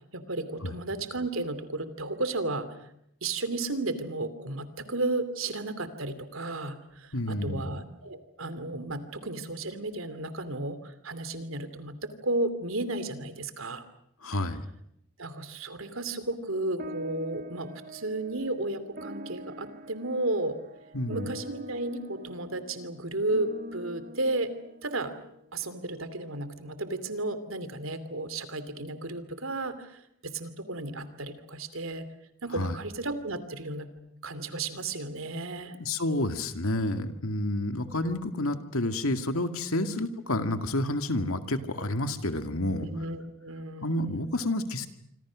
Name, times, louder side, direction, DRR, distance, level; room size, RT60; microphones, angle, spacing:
voice 1, 0.1-2.9 3.2-13.8 15.2-20.6 21.1-24.5 24.8-25.1 25.5-32.1 32.4-33.9 34.2-35.8 39.8-40.0 42.8-44.2, right 2 dB, 75° right, 12 dB, 2.8 m, -33 dB
voice 2, 7.1-7.8 14.2-14.6 20.9-21.3 32.5-32.7 35.8-42.9 43.8-44.9, left 1 dB, 85° left, 8 dB, 2.2 m, -29 dB
sound 1, 16.8-25.5, equal, 40° right, 1.1 m, -44 dB
26.5 x 26.5 x 6.3 m, 0.74 s
head